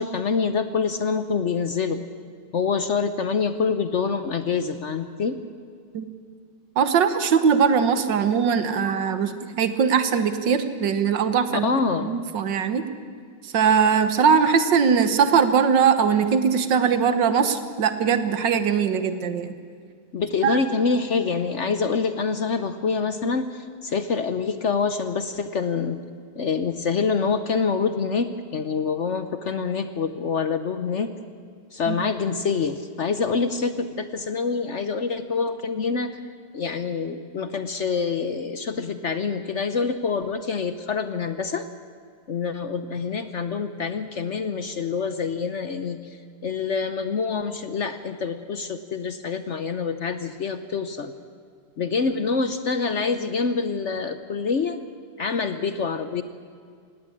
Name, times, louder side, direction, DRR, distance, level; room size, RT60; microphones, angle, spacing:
voice 1, 0.0-2.0 2.5-5.4 11.5-12.2 20.1-26.0 26.4-31.1 31.7-36.1 36.5-41.7 42.3-51.1 51.8-54.8 55.2-56.2, left 5 dB, 55° left, 10 dB, 0.9 m, -26 dB
voice 2, 6.8-11.7 12.0-12.8 13.4-19.5 20.4-20.6 31.9-32.0, right 6 dB, 85° right, 10 dB, 1.9 m, -21 dB
18.0 x 18.0 x 8.7 m, 2.1 s
omnidirectional pair, 1.9 m